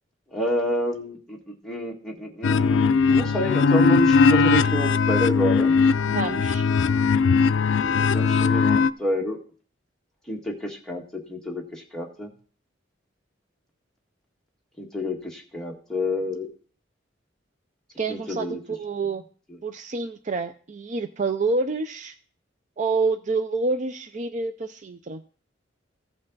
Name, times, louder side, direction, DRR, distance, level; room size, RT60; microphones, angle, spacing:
voice 1, 0.3-5.7 8.1-9.4 10.3-11.0 11.3-12.3 14.8-16.5 18.1-18.6 19.5-19.6, equal, 5° left, -2 dB, 1.7 m, -29 dB
sound 1, 2.4-8.9, left 5 dB, 85° left, 0.4 m, -19 dB
voice 2, 6.1-6.7 18.0-19.2 19.6-22.2 22.8-25.2, right 3 dB, 40° right, 9 dB, 0.5 m, -28 dB
15.0 x 5.6 x 3.9 m, 0.42 s
head